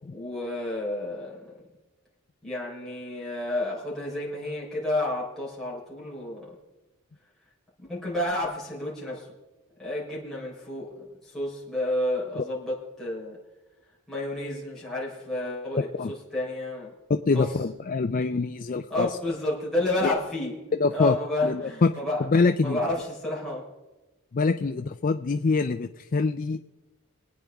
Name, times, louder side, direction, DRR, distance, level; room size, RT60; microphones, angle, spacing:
voice 1, 0.0-1.6 2.4-6.6 7.8-9.3 9.8-13.4 14.1-16.9 17.3-17.6 18.9-22.3 22.6-23.6 24.6-24.7, left 1 dB, ahead, -7 dB, 4.2 m, -31 dB
voice 2, 17.1-19.1 20.0-20.2 20.8-21.1 21.4-21.9 22.3-22.8 24.3-26.6, left 4 dB, 40° left, 7 dB, 0.4 m, -24 dB
23.0 x 9.1 x 3.5 m, 1.1 s
head